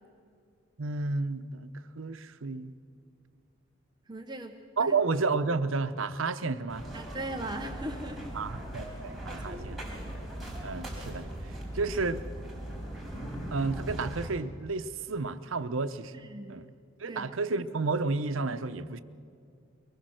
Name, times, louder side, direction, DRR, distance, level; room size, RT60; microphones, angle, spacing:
voice 1, 0.8-2.7 4.8-6.9 8.3-8.9 9.2-10.1 10.6-11.3 11.7-12.2 13.5-16.7 17.0-19.0, right 3 dB, 85° right, 11 dB, 0.8 m, -31 dB
voice 2, 4.1-4.9 6.9-8.4 9.3-9.8 16.1-16.6 17.0-17.3, right 1 dB, 20° right, 4 dB, 0.8 m, -39 dB
sound 1, 6.7-14.3, right 1 dB, ahead, 4.4 m, -39 dB
23.0 x 19.0 x 6.4 m, 2.4 s
head